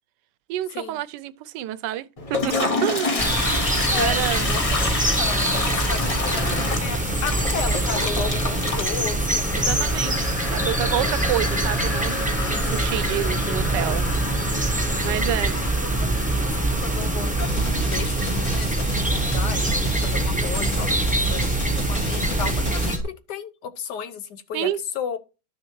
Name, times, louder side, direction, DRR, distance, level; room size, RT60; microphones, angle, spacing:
voice 1, 0.5-3.2 4.0-4.5 9.5-14.0 14.5-15.6 24.5-24.8, right 13 dB, 85° right, 1.2 m, -29 dB
Toilet flush, 2.2-18.9, left 3 dB, 30° left, 0.8 m, -29 dB
sound 1, 3.2-23.0, right 2 dB, 10° right, 0.6 m, -24 dB
voice 2, 4.4-4.8 5.1-10.0 10.9-11.1 12.4-12.7 15.0-15.3 15.8-17.6 17.9-24.7 24.9-25.2, left 7 dB, 75° left, 1.5 m, -34 dB
sound 2, 17.4-23.0, equal, 60° left, 2.4 m, -32 dB
12.0 x 6.3 x 3.1 m
omnidirectional pair, 1.8 m